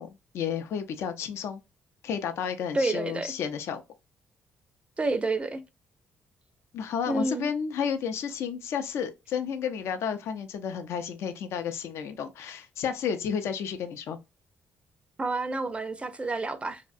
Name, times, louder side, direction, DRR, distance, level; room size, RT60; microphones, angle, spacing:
voice 1, 0.0-1.6 2.0-3.8 6.7-14.2, left 7 dB, 70° left, 0.4 m, -32 dB
voice 2, 2.7-3.3 5.0-5.6 7.1-7.5 15.2-16.8, right 2 dB, 25° right, 0.4 m, -29 dB
2.7 x 2.1 x 2.4 m
supercardioid pair, 60°, 5 cm